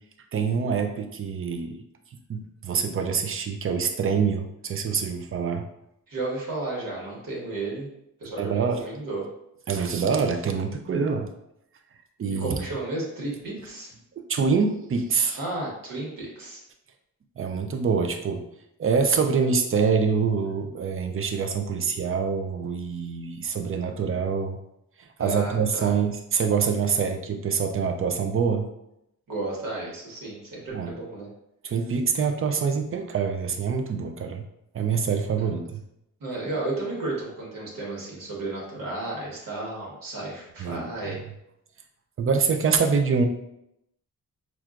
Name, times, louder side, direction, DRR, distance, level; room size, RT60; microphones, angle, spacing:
voice 1, 0.3-1.8 2.3-5.6 8.4-8.8 9.7-11.3 12.2-12.6 14.2-15.4 17.4-18.4 18.8-24.6 25.2-28.7 30.7-30.9 31.6-34.4 34.7-35.8 40.6-40.9 42.2-43.3, right 5 dB, 40° right, 5 dB, 0.4 m, -25 dB
voice 2, 6.1-7.9 8.2-9.3 12.3-13.9 15.3-16.6 25.2-25.9 29.3-31.3 35.4-35.6 36.2-41.2, right 2 dB, 80° right, -4 dB, 1.4 m, -33 dB
6.0 x 2.4 x 2.5 m, 0.80 s
wide cardioid pair, 150°, 33 cm